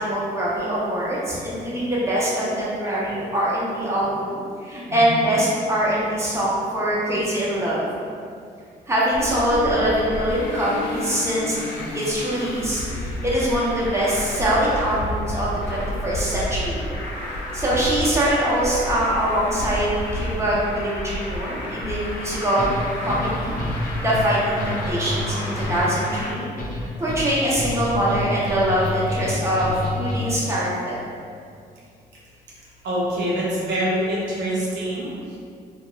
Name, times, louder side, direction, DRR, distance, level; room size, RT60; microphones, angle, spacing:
voice 1, 0.0-7.9 8.9-11.6 11.9-16.9 17.5-22.7 23.0-23.6 24.0-26.4 26.8-31.1, right 1 dB, 15° right, -7 dB, 0.8 m, -23 dB
voice 2, 4.9-5.3 32.8-35.4, right 1 dB, 70° right, -6 dB, 0.6 m, -25 dB
Traffic noise roadway noise, 9.1-26.3, left 1 dB, 80° left, 0.4 m, -31 dB
sound 1, 22.6-30.5, left 1 dB, 45° left, 0.7 m, -28 dB
2.8 x 2.1 x 2.2 m, 2.3 s
supercardioid pair, 60°, 18 cm